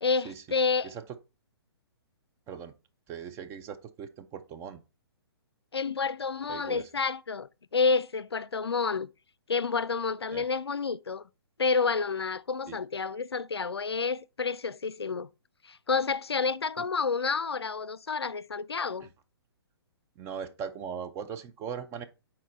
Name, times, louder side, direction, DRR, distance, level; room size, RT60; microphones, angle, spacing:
voice 1, 0.0-0.9 5.7-9.1 9.5-11.2 11.6-15.3 15.6-19.1, left 4 dB, 85° left, 0.4 m, -29 dB
voice 2, 3.1-4.8 6.5-6.9 10.3-10.4 12.7-12.8 16.8-16.9 19.0-19.1 20.2-22.0, right 7 dB, 20° right, 0.5 m, -39 dB
6.3 x 4.4 x 3.9 m
figure-of-eight pair, 125°, 13 cm